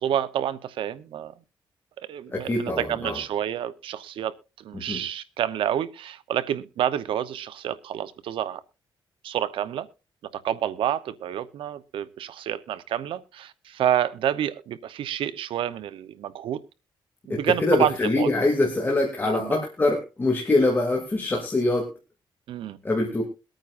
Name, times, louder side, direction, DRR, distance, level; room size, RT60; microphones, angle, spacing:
voice 1, 0.0-1.3 2.0-8.6 9.2-9.9 10.3-16.6 17.3-18.3 19.2-19.6 22.5-22.8, right 10 dB, 85° right, 0.9 m, -28 dB
voice 2, 2.3-3.2 4.7-5.0 17.3-21.9 22.8-23.2, left 2 dB, 25° left, 2.6 m, -24 dB
22.5 x 9.1 x 2.5 m
cardioid pair, 95°, 9 cm